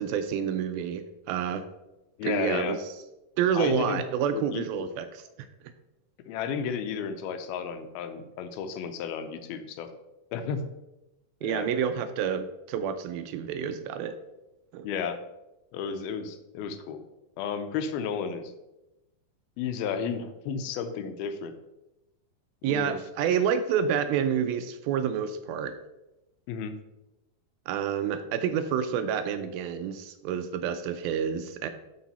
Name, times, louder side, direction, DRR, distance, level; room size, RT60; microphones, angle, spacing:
voice 1, 0.0-1.7 2.2-2.8 3.4-5.2 11.4-14.2 14.7-14.9 22.6-25.8 27.7-31.7, right 8 dB, 80° right, 9 dB, 2.2 m, -28 dB
voice 2, 2.2-2.8 3.5-4.0 4.3-4.9 6.3-9.9 10.3-10.6 11.4-11.7 14.8-15.2 15.7-17.0 17.4-18.5 19.6-21.5 22.6-23.0 26.5-26.8, left 6 dB, 80° left, 8 dB, 2.5 m, -33 dB
11.5 x 4.7 x 4.1 m, 0.97 s
omnidirectional pair, 4.4 m